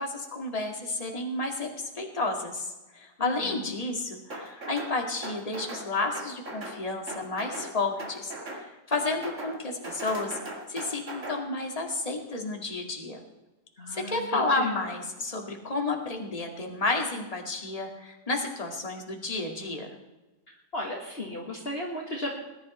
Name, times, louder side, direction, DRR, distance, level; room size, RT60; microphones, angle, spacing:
voice 1, 0.0-10.4 10.7-13.2 13.9-19.9, left 3 dB, 20° left, 2 dB, 2.1 m, -31 dB
voice 2, 3.2-3.7 13.8-14.8 20.7-22.4, left 1 dB, 35° left, -1 dB, 1.9 m, -35 dB
sound 1, 4.3-4.9 5.2-5.9 6.1-6.8 7.1-7.7 8.0-8.6 8.9-9.6 9.8-11.4, right 2 dB, 45° right, 2.6 m, -38 dB
20.0 x 11.5 x 4.3 m, 1.1 s
omnidirectional pair, 1.8 m